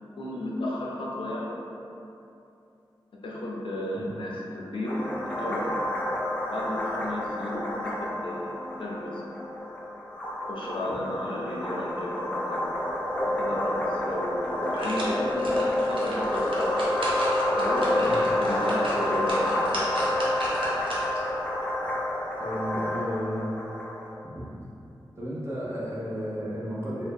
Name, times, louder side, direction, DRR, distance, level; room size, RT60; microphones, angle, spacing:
voice 1, 0.2-1.5 3.2-5.8 6.5-9.2 10.5-12.6 13.3-15.6 15.9-16.5 17.4-19.5, left 1 dB, 75° left, -4 dB, 0.5 m, -33 dB
sound 1, 4.9-24.1, left 1 dB, 15° left, 0.6 m, -29 dB
sound 2, 13.9-14.0 14.4-21.3 21.7-21.8, equal, 75° right, 0.6 m, -37 dB
voice 2, 22.4-23.5 24.2-24.5 25.2-27.1, equal, 30° right, -7 dB, 0.8 m, -33 dB
2.6 x 2.2 x 3.6 m, 2.8 s
wide cardioid pair, 60°, 9 cm